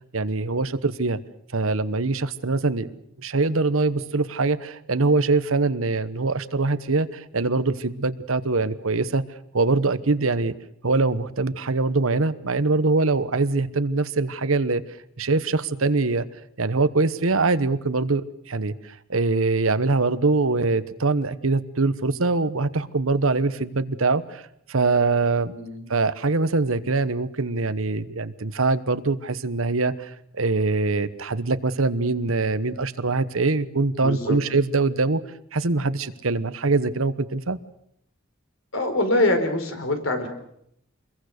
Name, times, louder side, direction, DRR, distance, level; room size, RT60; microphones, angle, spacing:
voice 1, 0.1-1.2 1.5-2.9 3.2-9.2 9.5-10.5 10.8-14.8 15.2-16.2 16.6-24.4 24.7-25.5 25.9-35.2 35.5-37.6, right 3 dB, 80° right, 13 dB, 1.1 m, -23 dB
voice 2, 25.4-25.9 34.0-34.4 38.7-40.3, left 2 dB, 70° left, 6 dB, 4.5 m, -24 dB
27.0 x 22.0 x 6.7 m, 0.74 s
head